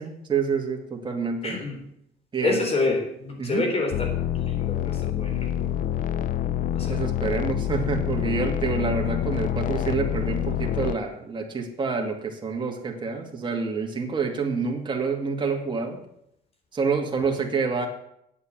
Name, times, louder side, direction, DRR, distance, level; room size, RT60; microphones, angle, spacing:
voice 1, 0.0-1.6 2.3-2.6 2.9-3.0 3.4-3.7 6.9-16.0 16.7-17.9, right 5 dB, 30° right, 1 dB, 2.3 m, -27 dB
voice 2, 1.4-1.8 2.4-5.7 6.7-7.0, left 3 dB, 35° left, 3 dB, 3.7 m, -28 dB
sound 1, 3.9-11.0, left 10 dB, 50° left, 0.5 m, -27 dB
9.6 x 8.4 x 7.6 m, 0.75 s
cardioid pair, 110°, 17 cm